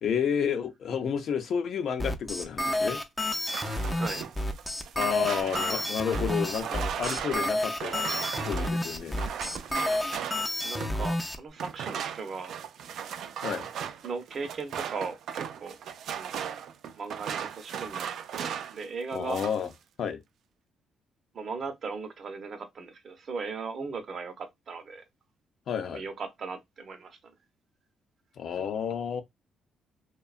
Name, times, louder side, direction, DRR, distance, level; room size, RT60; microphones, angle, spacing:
voice 1, 0.0-3.0 5.0-9.2 13.4-13.7 19.1-19.7 20.0-20.2 25.7-26.0 28.4-29.2, left 7 dB, 65° left, 0.5 m, -31 dB
sound 1, 2.0-11.4, left 1 dB, 15° left, 0.4 m, -30 dB
sound 2, 3.3-11.1 11.6-18.8 19.1-19.7, right 8 dB, 75° right, 0.3 m, -37 dB
voice 2, 3.9-4.3 10.6-12.6 14.0-15.8 16.1-16.4 16.9-18.1 18.4-19.4 21.3-25.0 25.9-27.3, right 4 dB, 50° right, 0.6 m, -38 dB
2.7 x 2.2 x 2.3 m
cardioid pair, 90°, 0 cm